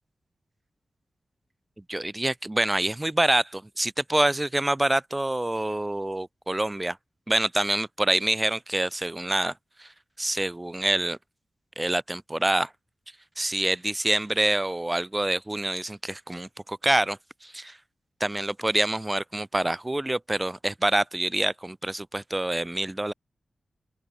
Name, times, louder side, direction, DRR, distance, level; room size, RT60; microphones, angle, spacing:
voice 1, 1.9-7.0 7.3-9.5 9.8-9.9 10.2-11.2 11.8-12.7 13.4-17.8 18.2-23.1, right 1 dB, 15° right, 0.6 m, -26 dB
open air
wide cardioid pair, 165°, 0 cm